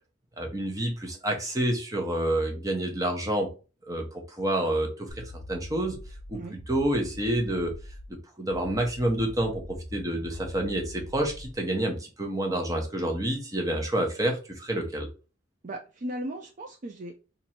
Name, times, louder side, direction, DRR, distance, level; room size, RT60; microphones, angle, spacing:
voice 1, 0.4-3.5 3.9-6.0 6.3-6.4 6.7-7.7 8.4-15.1, right 1 dB, 20° right, 2 dB, 0.9 m, -28 dB
sound 1, 5.1-8.1 8.5-11.5, left 1 dB, 5° left, 1.1 m, -43 dB
voice 2, 15.6-17.2, right 1 dB, 40° right, 2 dB, 0.5 m, -37 dB
2.9 x 2.6 x 4.3 m, 0.32 s
head